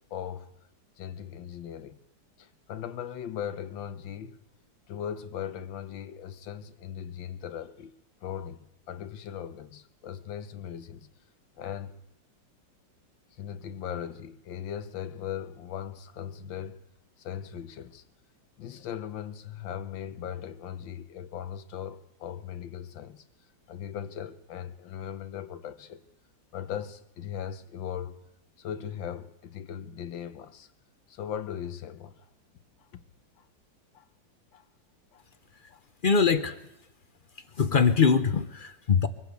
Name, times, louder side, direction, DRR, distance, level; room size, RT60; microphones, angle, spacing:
voice 1, 0.1-0.5 1.0-2.0 2.4-4.4 4.9-7.9 8.2-11.1 11.6-12.0 13.3-16.8 17.2-18.0 18.6-23.2 23.7-26.0 26.5-28.2 28.6-30.7 31.1-32.3 32.8-33.0 33.4-33.5 33.9-34.1 34.5-34.7 35.1-35.2 35.7-35.8, left 9 dB, 85° left, 1.7 m, -38 dB
voice 2, 36.0-36.6 37.6-39.1, left 5 dB, 45° left, 0.6 m, -22 dB
23.5 x 15.5 x 8.2 m
omnidirectional pair, 2.0 m